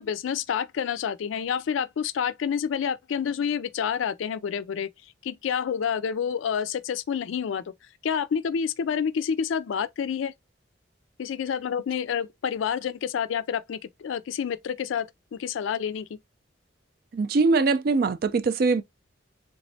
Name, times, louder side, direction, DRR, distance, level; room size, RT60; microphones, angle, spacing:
voice 1, 0.0-4.9 5.2-7.6 8.0-10.3 11.2-15.1 15.3-16.1, left 7 dB, 80° left, 0.3 m, -28 dB
voice 2, 17.1-18.8, right 4 dB, 50° right, 0.4 m, -22 dB
3.5 x 3.0 x 2.6 m
head